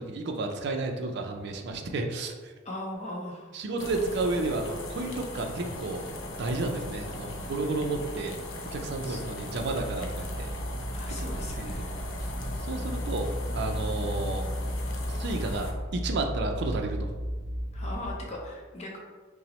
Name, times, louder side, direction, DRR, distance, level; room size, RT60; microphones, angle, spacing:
voice 1, 0.0-2.5 3.5-6.0 6.4-8.4 8.7-10.5 11.1-12.0 12.6-14.5 15.1-17.1, right 2 dB, 55° right, 4 dB, 0.4 m, -32 dB
voice 2, 2.6-3.5 9.0-9.2 10.9-11.9 17.7-19.0, left 1 dB, 35° left, -1 dB, 0.7 m, -39 dB
sound 1, 3.8-15.7, left 1 dB, 70° left, 0.6 m, -38 dB
sound 2, 9.6-18.1, equal, 35° right, 1.0 m, -34 dB
5.7 x 2.0 x 3.0 m, 1.4 s
head